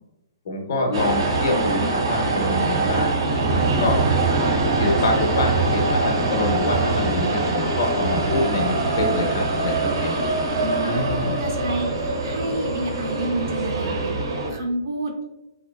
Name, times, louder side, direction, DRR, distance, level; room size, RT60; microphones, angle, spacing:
voice 1, 0.5-3.1 3.8-4.0 4.6-10.1 10.8-11.4, left 2 dB, 40° left, 1 dB, 0.5 m, -25 dB
sound 1, 0.9-14.5, right 3 dB, 90° right, 0.7 m, -23 dB
voice 2, 10.5-14.2 14.5-15.2, right 2 dB, 40° right, 1 dB, 0.4 m, -29 dB
2.5 x 2.2 x 2.2 m, 0.92 s
hypercardioid pair, 180°, 2 cm